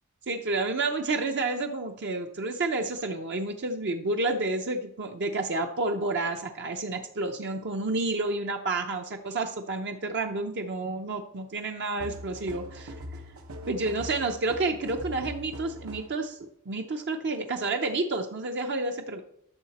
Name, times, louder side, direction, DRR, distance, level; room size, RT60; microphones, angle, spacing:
voice 1, 0.3-12.9 13.7-19.2, right 2 dB, 55° right, 4 dB, 0.7 m, -30 dB
sound 1, 12.0-16.2, left 1 dB, 80° right, 1.1 m, -42 dB
11.5 x 6.6 x 4.2 m, 0.75 s
head